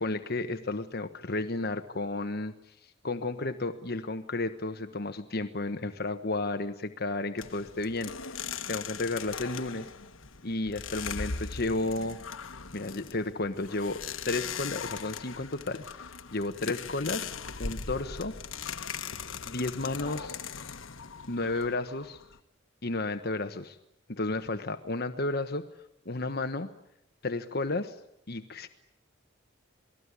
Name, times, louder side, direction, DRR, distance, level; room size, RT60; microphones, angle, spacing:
voice 1, 0.0-8.1 8.7-9.9 10.4-12.2 12.7-14.0 14.3-18.4 19.4-20.4 21.3-22.2 22.8-23.8 24.1-25.7 26.0-26.7 27.2-28.0 28.3-28.7, left 2 dB, 55° left, 8 dB, 1.2 m, -32 dB
sound 1, 7.4-22.4, left 6 dB, 80° left, 1.3 m, -39 dB
28.5 x 20.0 x 9.8 m, 0.79 s
head